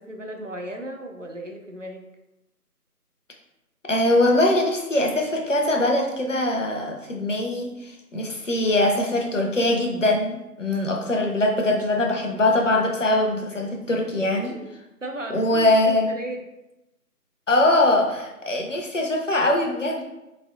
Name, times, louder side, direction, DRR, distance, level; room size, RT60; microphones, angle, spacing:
voice 1, 0.0-2.0 14.5-14.7 15.0-16.4, right 1 dB, 55° right, 2 dB, 0.5 m, -35 dB
voice 2, 3.9-14.5 15.3-16.1 17.5-20.0, left 1 dB, 50° left, 1 dB, 0.7 m, -22 dB
3.6 x 3.3 x 2.4 m, 0.95 s
figure-of-eight pair, 165°, 47 cm